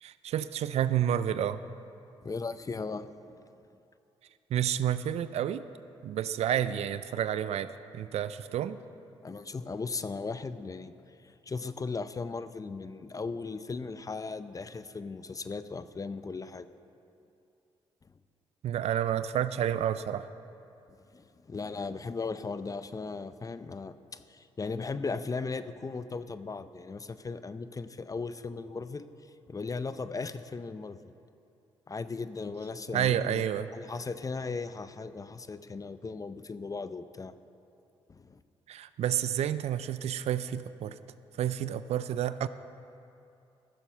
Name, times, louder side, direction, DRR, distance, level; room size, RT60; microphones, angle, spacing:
voice 1, 0.0-1.6 4.5-5.6 6.0-8.8 18.6-20.3 32.9-33.7 38.7-41.0 41.4-42.5, right 10 dB, 70° right, 14 dB, 0.4 m, -30 dB
voice 2, 2.2-3.1 3.3-3.4 9.2-10.9 11.2-16.7 21.1-29.1 29.5-31.0 31.9-33.4 33.7-37.3 38.1-38.4, left 4 dB, 30° left, 13 dB, 0.5 m, -37 dB
15.0 x 7.0 x 5.7 m, 2.7 s
supercardioid pair, 55°, 11 cm